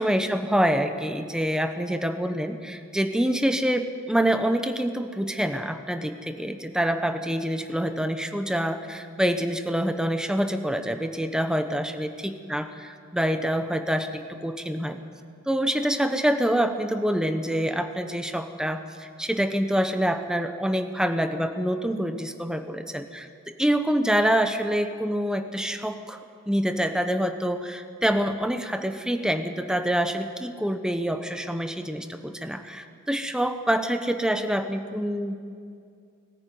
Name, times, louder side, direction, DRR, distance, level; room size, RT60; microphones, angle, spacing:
voice 1, 0.0-15.0 15.5-26.2 26.5-35.4, equal, 5° right, 7 dB, 1.0 m, -26 dB
20.0 x 14.0 x 9.2 m, 2.3 s
head